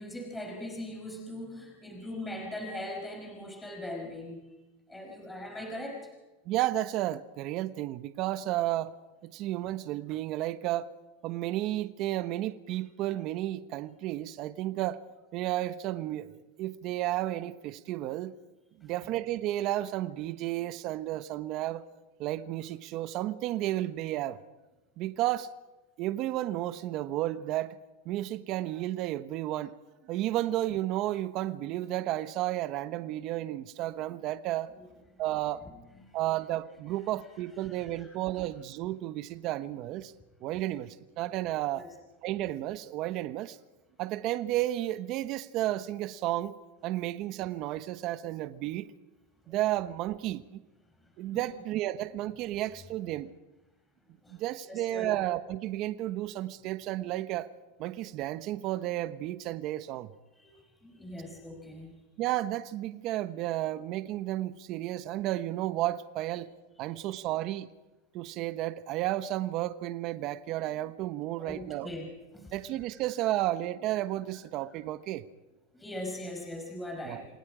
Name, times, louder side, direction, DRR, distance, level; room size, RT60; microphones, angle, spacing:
voice 1, 0.0-4.5 4.9-6.1 18.8-19.1 34.7-34.9 35.6-36.2 37.6-38.1 40.7-40.8 41.7-41.9 49.4-49.6 51.0-51.5 54.0-54.4 54.7-55.2 60.4-61.9 71.4-72.5 75.7-77.3, left 1 dB, 10° left, 5.3 m, -41 dB
voice 2, 6.5-8.9 9.3-10.9 11.2-15.0 15.3-18.3 18.8-21.9 22.2-24.4 25.0-25.5 26.0-27.7 28.0-29.7 30.1-34.7 35.2-35.6 36.1-40.1 40.4-41.8 42.2-43.6 44.0-46.5 46.8-48.9 49.5-50.6 51.2-53.3 54.3-57.5 57.8-60.1 62.2-66.5 66.8-67.7 68.1-71.9 72.5-75.2 77.0-77.2, right 14 dB, 50° right, 1.0 m, -32 dB
27.5 x 19.5 x 5.0 m
supercardioid pair, 125°, 0 cm